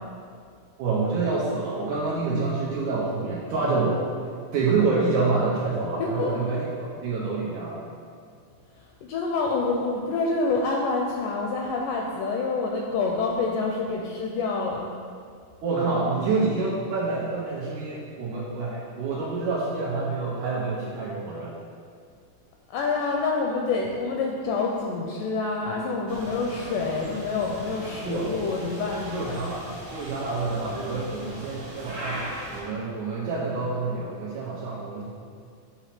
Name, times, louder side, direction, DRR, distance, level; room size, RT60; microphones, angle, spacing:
voice 1, 0.8-4.0 4.5-6.7 7.0-7.8 15.6-21.5 28.1-28.3 29.1-29.7 29.9-35.0, right 3 dB, 75° right, -5 dB, 1.9 m, -27 dB
voice 2, 6.0-6.3 9.0-14.8 22.7-29.4, left 3 dB, 80° left, -1 dB, 1.9 m, -27 dB
sound 1, 26.1-32.6, equal, 50° right, 0.8 m, -39 dB
8.1 x 2.8 x 5.8 m, 2.2 s
omnidirectional pair, 4.2 m